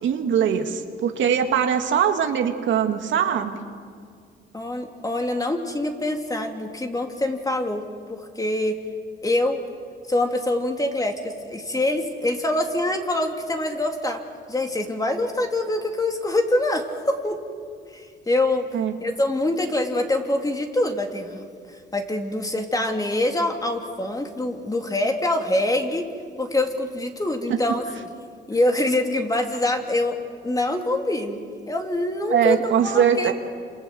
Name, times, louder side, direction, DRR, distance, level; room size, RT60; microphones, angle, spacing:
voice 1, 0.0-3.6 18.7-19.0 27.5-27.8 32.3-33.3, right 8 dB, 70° right, 5 dB, 2.2 m, -22 dB
voice 2, 4.5-7.8 8.1-8.8 9.2-9.6 10.1-14.2 14.5-17.4 17.9-18.7 19.0-26.1 26.4-27.8 28.5-30.2 30.4-31.4 31.7-33.3, left 1 dB, 20° left, 3 dB, 3.0 m, -25 dB
28.0 x 27.0 x 7.8 m, 2.2 s
cardioid pair, 90°, 20 cm